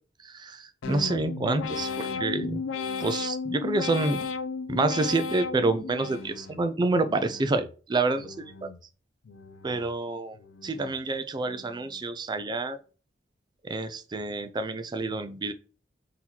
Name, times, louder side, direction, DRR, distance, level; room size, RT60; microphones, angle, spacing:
voice 1, 0.2-2.6 3.0-4.2 4.7-8.7 9.6-10.4 10.6-12.8 13.6-15.5, right 3 dB, 25° right, 10 dB, 0.3 m, -28 dB
sound 1, 0.8-6.7 7.1-7.7 8.2-8.8 9.3-9.9 10.4-11.0 11.5-12.0, left 5 dB, 90° left, 0.4 m, -35 dB
3.9 x 2.8 x 4.3 m, 0.35 s
head